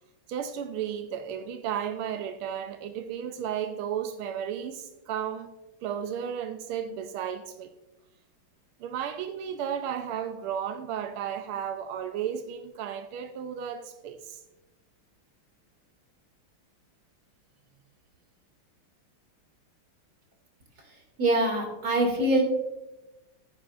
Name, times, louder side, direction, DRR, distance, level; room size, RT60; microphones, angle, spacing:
voice 1, 0.3-5.5 5.8-7.7 8.8-14.4, right 8 dB, 90° right, 1.5 m, -34 dB
voice 2, 21.2-22.4, right 1 dB, 45° right, 2.9 m, -24 dB
15.5 x 9.8 x 2.5 m
omnidirectional pair, 2.3 m